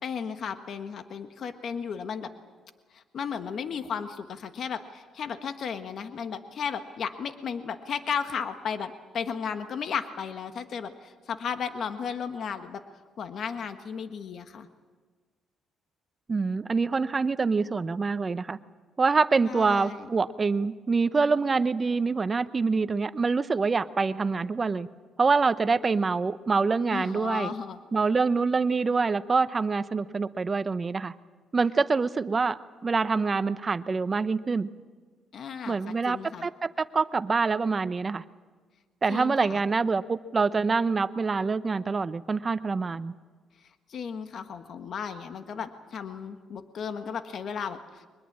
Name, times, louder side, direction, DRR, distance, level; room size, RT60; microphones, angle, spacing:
voice 1, 0.0-2.3 2.9-12.8 13.2-14.7 19.4-20.1 26.9-27.8 35.3-36.5 39.1-39.6 43.9-48.1, left 6 dB, 60° left, 8 dB, 1.4 m, -34 dB
voice 2, 16.3-18.6 19.0-24.9 25.2-27.5 27.9-31.1 31.5-34.7 35.7-38.2 39.0-43.1, right 4 dB, 30° right, 13 dB, 0.8 m, -25 dB
23.0 x 21.0 x 8.7 m, 1.5 s
cardioid pair, 90°, 0 cm